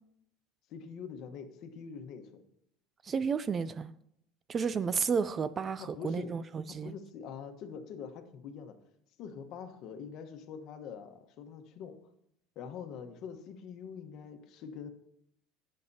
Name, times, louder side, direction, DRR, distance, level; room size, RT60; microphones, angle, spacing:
voice 1, 0.7-2.4 5.8-6.3 6.7-8.7 9.2-12.0 12.5-14.9, left 7 dB, 50° left, 1.1 m, -44 dB
voice 2, 3.0-3.9 4.5-6.9, right 6 dB, 25° right, 0.3 m, -32 dB
16.5 x 6.6 x 2.8 m
cardioid pair, 145°, 0 cm